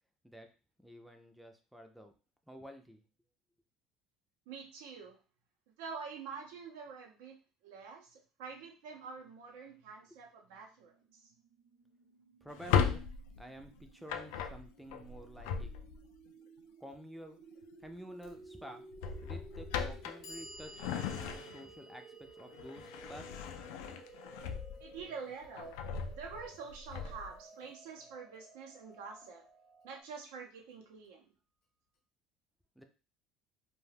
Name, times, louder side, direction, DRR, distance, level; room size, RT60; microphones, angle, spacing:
voice 1, 0.8-2.1 2.5-3.0 12.4-13.0 13.4-15.7 16.8-17.4 17.8-18.9 19.1-20.9 21.1-23.4 32.8-32.9, equal, ahead, 4 dB, 0.4 m, -50 dB
voice 2, 4.5-5.2 5.8-7.4 7.6-11.3 24.8-29.4 29.8-31.3, right 5 dB, 90° right, 1 dB, 0.6 m, -47 dB
sound 1, 10.9-30.0, right 2 dB, 40° right, 0.7 m, -56 dB
Drawer open or close, 12.5-16.2 17.6-17.9 18.3-18.4 18.9-21.8 22.3-25.0 25.4-27.4, left 7 dB, 85° left, 0.3 m, -37 dB
Clock, 18.2-18.3 19.3-19.4 19.9-26.0, equal, 65° left, 0.7 m, -56 dB
2.3 x 2.2 x 3.3 m, 0.34 s
cardioid pair, 115°, 0 cm